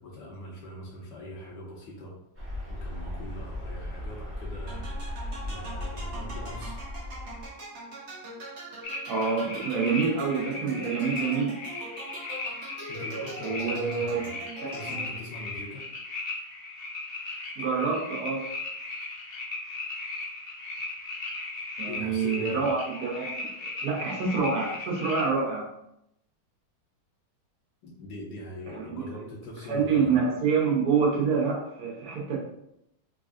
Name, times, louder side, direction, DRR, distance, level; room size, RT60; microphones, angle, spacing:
voice 1, 0.0-2.2 2.7-6.8 12.4-14.3 14.7-15.8 21.9-22.6 27.8-30.2, left 1 dB, 90° left, -4 dB, 1.5 m, -42 dB
sound 1, 2.3-7.5, left 1 dB, 10° right, 1.1 m, -37 dB
sound 2, 4.7-15.3, right 1 dB, 50° right, 1.0 m, -41 dB
sound 3, 8.8-25.2, left 3 dB, 50° left, 0.7 m, -37 dB
voice 2, 9.1-11.6 13.4-14.7 17.6-18.5 21.8-25.7 28.7-29.0 29.7-32.4, right 5 dB, 65° right, -2 dB, 1.4 m, -27 dB
3.8 x 3.4 x 2.5 m, 0.80 s
omnidirectional pair, 1.9 m